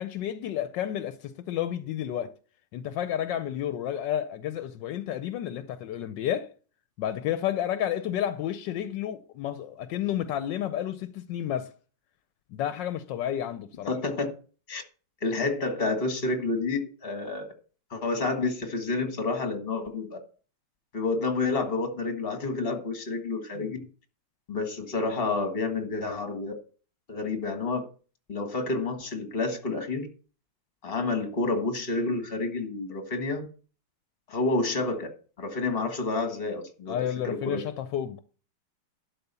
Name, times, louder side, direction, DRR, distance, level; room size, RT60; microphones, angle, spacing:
voice 1, 0.0-2.3 2.7-6.5 7.0-11.7 12.5-13.9 23.6-23.7 36.9-38.2, left 11 dB, 80° left, 1.3 m, -31 dB
voice 2, 13.9-14.3 14.7-14.8 15.2-17.5 17.9-20.2 20.9-23.8 24.5-26.5 27.1-27.8 28.3-30.1 30.8-33.5 34.3-35.1 35.4-37.6, left 3 dB, 30° left, 1.7 m, -29 dB
12.0 x 4.2 x 6.8 m
omnidirectional pair, 2.0 m